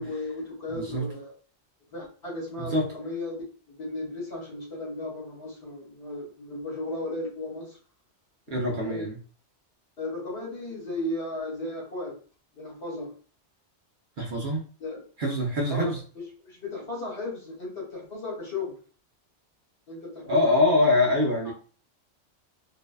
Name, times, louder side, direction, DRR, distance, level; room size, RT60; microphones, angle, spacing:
voice 1, 0.0-1.3 1.9-3.4 3.7-7.8 8.5-9.1 10.0-12.2 12.5-13.1 14.8-15.0 15.7-18.8 19.9-20.5 21.4-21.5, left 2 dB, 65° left, -4 dB, 1.3 m, -35 dB
voice 2, 0.7-1.1 2.6-2.9 8.5-9.2 14.2-14.6 15.2-16.0 20.3-21.5, left 2 dB, 55° right, 0 dB, 0.7 m, -24 dB
2.6 x 2.2 x 2.3 m, 0.39 s
omnidirectional pair, 1.2 m